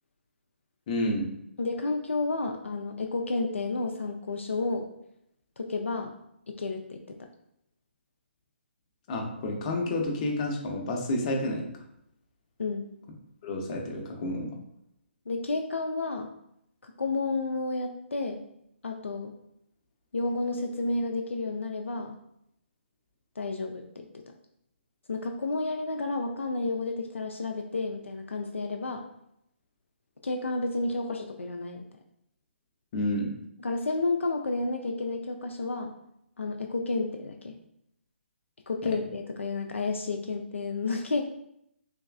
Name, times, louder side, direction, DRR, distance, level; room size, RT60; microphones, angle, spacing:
voice 1, 0.9-1.3 9.1-11.7 13.4-14.6 32.9-33.3 38.8-38.9, left 1 dB, 35° left, 1 dB, 0.7 m, -30 dB
voice 2, 1.6-4.9 5.6-6.1 6.5-7.2 12.6-12.9 15.3-16.3 16.8-18.4 18.8-19.3 20.1-22.2 23.4-24.2 25.1-29.0 30.2-31.8 33.6-35.9 36.4-37.5 38.7-41.2, left 3 dB, 80° left, 3 dB, 0.4 m, -31 dB
3.3 x 3.0 x 2.4 m, 0.76 s
figure-of-eight pair, 140°, 7 cm